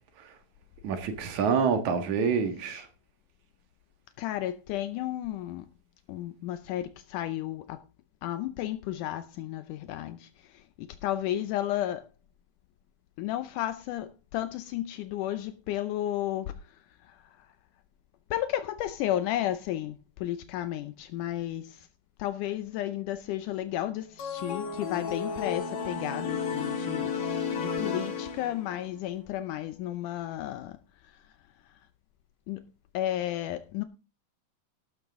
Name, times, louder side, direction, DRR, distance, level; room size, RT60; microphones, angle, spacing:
voice 1, 0.8-2.9, right 6 dB, 65° right, 3.0 m, -27 dB
voice 2, 4.2-5.7 6.1-7.8 8.2-12.1 13.2-16.6 17.0-17.5 18.3-21.9 22.2-27.1 27.6-30.8 31.0-31.2 32.5-32.6 32.9-33.8, left 13 dB, 80° left, 2.2 m, -33 dB
sound 1, 24.2-28.9, left 6 dB, 50° left, 2.6 m, -32 dB
13.0 x 12.0 x 3.6 m
omnidirectional pair, 3.7 m